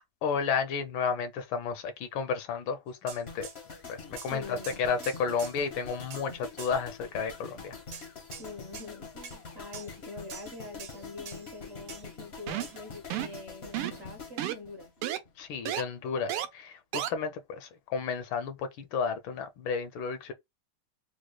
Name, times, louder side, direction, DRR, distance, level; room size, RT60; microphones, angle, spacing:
voice 1, 0.2-3.5 3.9-7.8 15.4-20.3, left 5 dB, 75° left, 1.3 m, -32 dB
sound 1, 3.1-3.6 4.2-4.3 4.6-5.5 6.1-6.2 6.6-6.7 7.9-8.5 8.7-8.9 9.2-9.4 9.7-9.9 10.3-10.5 10.8-11.0 11.3-11.5 11.9-12.0 12.6-12.7, right 6 dB, 65° right, 1.6 m, -44 dB
sound 2, 3.3-15.5 15.7-16.0, left 4 dB, 55° left, 0.6 m, -45 dB
voice 2, 4.2-4.8 8.4-14.9, left 3 dB, 50° right, 0.8 m, -44 dB
sound 3, 12.5-12.8 13.1-13.4 13.7-14.1 14.4-14.6 15.0-15.2 15.7-15.8 16.3-16.5 16.9-17.1, right 12 dB, 85° right, 1.5 m, -32 dB
4.9 x 2.1 x 2.2 m
omnidirectional pair, 2.4 m